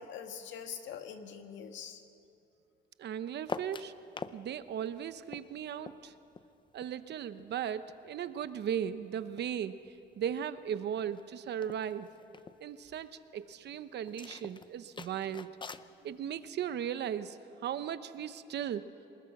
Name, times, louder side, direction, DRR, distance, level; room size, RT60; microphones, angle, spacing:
voice 1, 0.0-2.0, left 7 dB, 80° left, 6 dB, 1.7 m, -43 dB
voice 2, 3.0-3.9 4.3-6.1 6.7-9.8 10.2-12.1 12.6-15.5 16.0-17.4 17.6-18.8, right 9 dB, 65° right, 12 dB, 0.9 m, -37 dB
sound 1, 3.4-4.4 4.7-7.5 7.8-9.6 9.8-10.4 10.7-10.8 11.0-11.2 11.6-12.6 14.1-15.9, left 5 dB, 25° left, 0.6 m, -45 dB
26.5 x 20.5 x 6.1 m, 2.8 s
cardioid pair, 125°, 19 cm